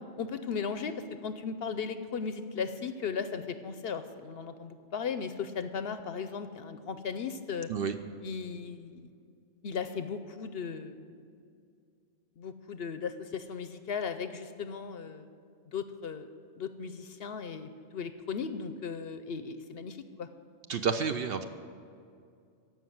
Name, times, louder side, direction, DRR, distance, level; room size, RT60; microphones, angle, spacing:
voice 1, 0.2-0.9 1.2-7.7 8.2-9.1 9.6-11.2 12.4-15.3 15.7-16.3 16.6-20.3, left 6 dB, 60° left, 10 dB, 0.8 m, -37 dB
voice 2, 20.7-21.4, right 6 dB, 60° right, 8 dB, 0.7 m, -30 dB
14.5 x 5.9 x 9.4 m, 2.4 s
omnidirectional pair, 1.3 m